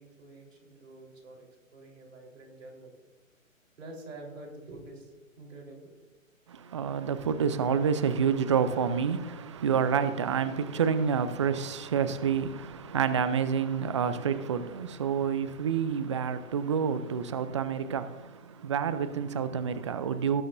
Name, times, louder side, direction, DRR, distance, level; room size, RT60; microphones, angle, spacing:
voice 1, 0.0-3.0 3.8-5.1 5.4-5.9, right 2 dB, 70° right, 3.9 m, -47 dB
voice 2, 6.5-20.4, right 7 dB, 25° right, 0.4 m, -28 dB
18.5 x 9.2 x 2.6 m
figure-of-eight pair, 130°, 41 cm